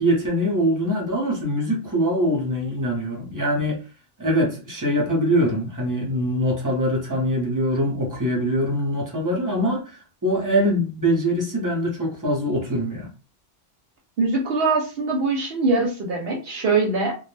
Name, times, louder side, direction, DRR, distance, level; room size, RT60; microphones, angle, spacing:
voice 1, 0.0-3.8 4.2-13.1, equal, 20° right, 0.5 m, -23 dB
voice 2, 14.2-17.1, right 3 dB, 60° right, 0.7 m, -22 dB
2.2 x 2.1 x 3.1 m
omnidirectional pair, 1.3 m